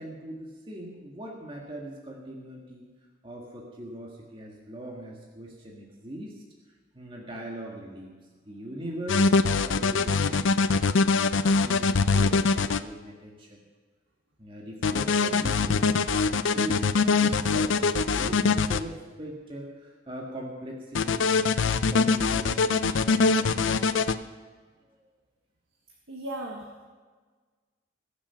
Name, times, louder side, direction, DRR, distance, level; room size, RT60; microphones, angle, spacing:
voice 1, 0.0-2.9 3.2-6.4 6.9-8.1 8.5-11.2 11.6-13.6 14.4-21.3 21.6-24.1 24.8-25.1, right 1 dB, 25° right, -2 dB, 1.7 m, -41 dB
sound 1, 9.1-12.8 14.8-18.8 20.9-24.1, left 4 dB, 75° left, 0.5 m, -23 dB
voice 2, 26.1-26.9, right 1 dB, 85° right, 0 dB, 1.6 m, -37 dB
21.0 x 7.0 x 5.8 m, 1.4 s
head